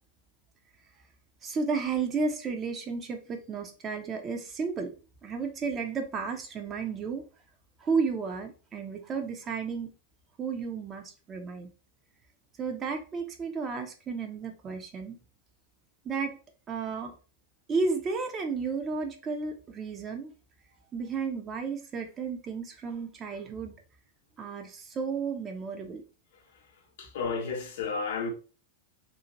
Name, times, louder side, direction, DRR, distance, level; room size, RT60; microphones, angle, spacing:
voice 1, 1.4-4.9 5.2-7.2 7.8-9.9 10.4-11.7 12.6-15.2 16.0-16.4 16.7-17.1 17.7-20.3 20.9-23.7 24.4-26.0, right 5 dB, 25° right, 0.6 m, -33 dB
voice 2, 27.0-28.3, left 5 dB, 55° left, 0.7 m, -32 dB
2.6 x 2.4 x 2.9 m
figure-of-eight pair, 90°, 0 cm